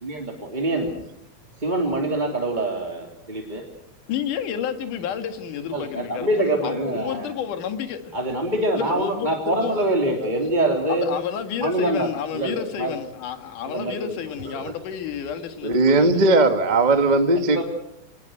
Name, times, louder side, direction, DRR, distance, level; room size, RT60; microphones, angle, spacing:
voice 1, 0.0-0.9 1.6-3.6 5.7-7.3 8.1-11.1 11.6-12.1 12.3-12.9 13.7-14.1 17.5-17.6, right 1 dB, 15° right, 2.7 m, -24 dB
voice 2, 4.1-8.1 8.7-9.9 10.9-16.3, left 8 dB, 60° left, 3.2 m, -31 dB
voice 3, 15.6-17.6, right 2 dB, 85° right, 0.4 m, -18 dB
27.5 x 20.5 x 7.9 m
omnidirectional pair, 4.4 m